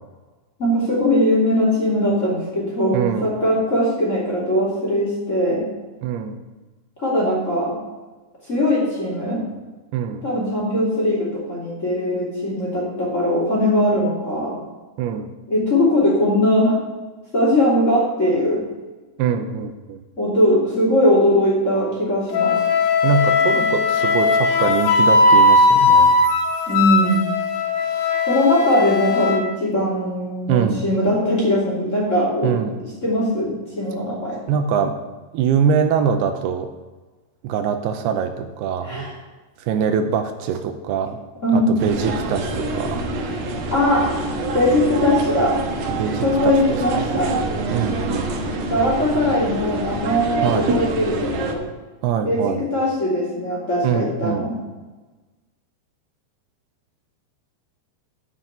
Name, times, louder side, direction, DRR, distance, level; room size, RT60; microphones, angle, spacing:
voice 1, 0.6-5.6 7.0-7.8 8.5-9.4 10.2-14.6 15.5-16.8 17.3-18.6 20.2-22.6 23.4-23.6 26.7-27.3 28.3-32.5 33.0-34.4 38.8-39.1 41.4-41.8 43.7-44.1 44.5-45.6 46.2-47.4 48.7-51.6 52.2-54.6, left 1 dB, 20° left, -5 dB, 2.9 m, -20 dB
voice 2, 2.9-3.3 6.0-6.4 9.9-10.2 15.0-15.3 19.2-20.0 23.0-26.2 30.5-30.9 32.4-32.8 34.5-35.0 35.3-36.7 37.4-39.1 39.6-41.2 41.5-43.1 45.9-47.2 47.7-48.3 50.4-50.7 52.0-52.6 53.8-54.5, right 7 dB, 80° right, 7 dB, 2.7 m, -23 dB
Wind instrument woodwind instrument, 22.3-29.4, left 3 dB, 80° left, 3.1 m, -17 dB
sound 1, 41.8-51.5, right 2 dB, 65° right, 2.3 m, -26 dB
9.6 x 5.8 x 7.9 m, 1.3 s
omnidirectional pair, 4.7 m